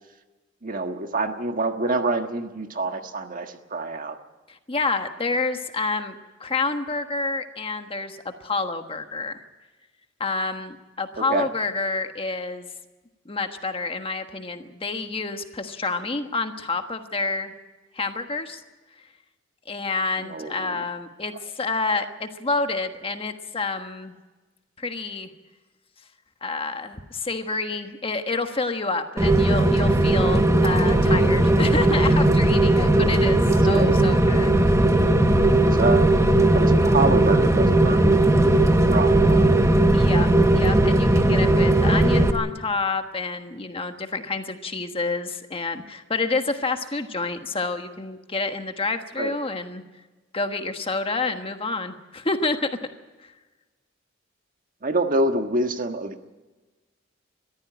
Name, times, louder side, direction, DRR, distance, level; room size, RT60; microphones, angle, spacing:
voice 1, 0.6-4.2 11.2-11.5 20.2-20.9 33.7-34.0 35.7-36.1 36.5-38.5 38.9-39.6 49.2-49.3 54.8-56.2, right 2 dB, 45° right, 6 dB, 1.5 m, -26 dB
voice 2, 4.7-9.4 10.2-12.7 13.2-17.5 17.9-18.6 19.7-24.1 24.8-25.3 26.4-34.5 39.9-49.8 50.3-52.7, left 3 dB, 30° left, 7 dB, 1.4 m, -28 dB
Rain, 29.2-42.3, right 1 dB, 15° right, 1.2 m, -18 dB
21.5 x 14.5 x 8.8 m, 1.2 s
head